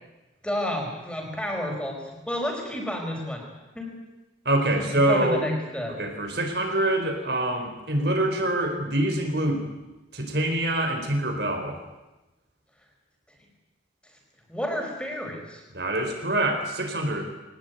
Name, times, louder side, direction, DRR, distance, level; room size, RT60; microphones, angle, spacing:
voice 1, 0.4-3.5 3.7-4.0 4.7-6.0 14.5-15.6, left 1 dB, 5° left, 1 dB, 4.9 m, -30 dB
voice 2, 4.4-5.4 6.0-9.6 10.1-11.8 15.7-17.2, right 1 dB, 60° right, 4 dB, 4.5 m, -25 dB
22.0 x 19.0 x 9.3 m, 1.1 s
head